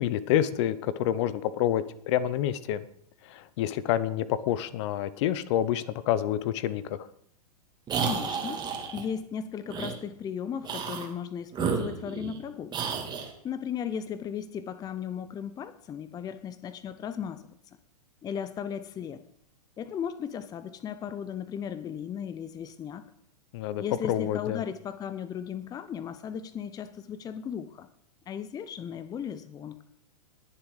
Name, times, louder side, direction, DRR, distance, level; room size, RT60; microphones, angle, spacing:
voice 1, 0.0-2.8 3.2-7.1 23.5-24.6, left 11 dB, 45° left, 16 dB, 0.9 m, -28 dB
sound 1, 7.9-9.0 9.7-9.9 10.6-11.1 11.5-12.4 12.7-13.3, right 6 dB, 20° right, 2.4 m, -31 dB
voice 2, 8.0-8.6 8.9-12.9 13.4-17.5 18.2-19.2 19.8-23.1 23.8-27.9 28.3-29.8, left 8 dB, 20° left, 13 dB, 0.7 m, -36 dB
20.0 x 7.2 x 4.9 m, 0.67 s
hypercardioid pair, 110°, 20 cm